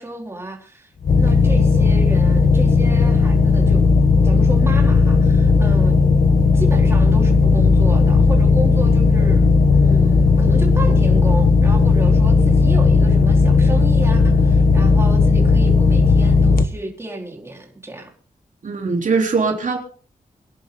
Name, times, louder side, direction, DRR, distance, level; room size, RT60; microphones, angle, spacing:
voice 1, 0.0-3.8 4.2-6.0 6.5-18.1, right 1 dB, 20° right, 4.5 m, -32 dB
sound 1, 1.0-16.6, left 4 dB, 85° left, 1.4 m, -14 dB
voice 2, 18.6-19.8, right 4 dB, 65° right, 3.8 m, -20 dB
24.0 x 11.0 x 4.0 m
wide cardioid pair, 150°, 14 cm